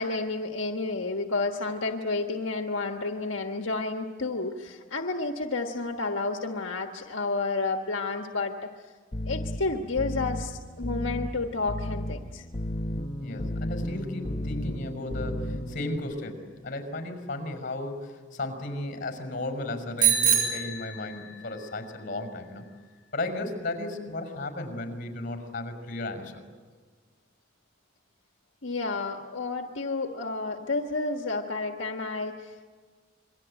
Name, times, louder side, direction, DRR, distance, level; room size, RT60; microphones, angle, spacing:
voice 1, 0.0-8.7 9.3-12.4 28.6-32.7, left 3 dB, 85° left, 3 dB, 1.5 m, -31 dB
sound 1, 9.1-16.0, left 1 dB, 30° left, 1.1 m, -34 dB
voice 2, 13.2-22.7 23.1-26.4, left 2 dB, 45° left, 6 dB, 5.8 m, -35 dB
Bicycle bell, 20.0-21.5, right 8 dB, 50° right, 6.8 m, -25 dB
28.0 x 23.5 x 9.0 m, 1.5 s
head